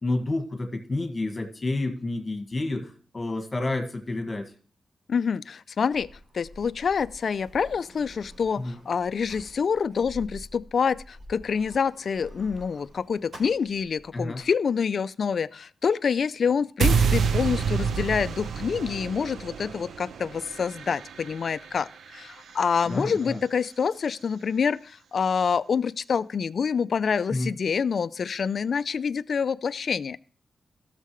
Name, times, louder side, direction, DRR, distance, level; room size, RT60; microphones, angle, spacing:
voice 1, 0.0-4.5 8.6-8.8 14.1-14.4 22.8-23.4 27.3-27.5, left 2 dB, 30° left, 1.7 m, -29 dB
voice 2, 5.1-6.1 6.3-30.2, left 6 dB, 65° left, 0.4 m, -27 dB
Sliding door, 5.9-14.5, equal, 70° right, 3.9 m, -48 dB
sound 1, 16.8-23.0, right 6 dB, 85° right, 0.5 m, -28 dB
15.5 x 6.6 x 3.1 m
cardioid pair, 85°, 0 cm